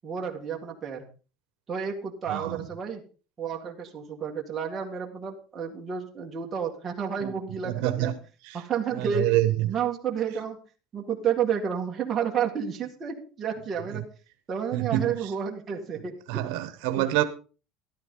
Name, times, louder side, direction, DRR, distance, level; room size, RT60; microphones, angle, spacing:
voice 1, 0.0-1.1 1.7-3.0 3.4-8.2 8.5-9.3 9.6-10.6 10.9-14.1 14.5-16.4 17.0-17.1, right 7 dB, 20° right, 2.0 m, -31 dB
voice 2, 2.3-2.6 7.6-8.1 8.5-8.6 9.0-9.5 14.7-15.0 16.3-17.2, right 15 dB, 75° right, 1.1 m, -26 dB
13.5 x 12.5 x 3.8 m
cardioid pair, 175°, 0 cm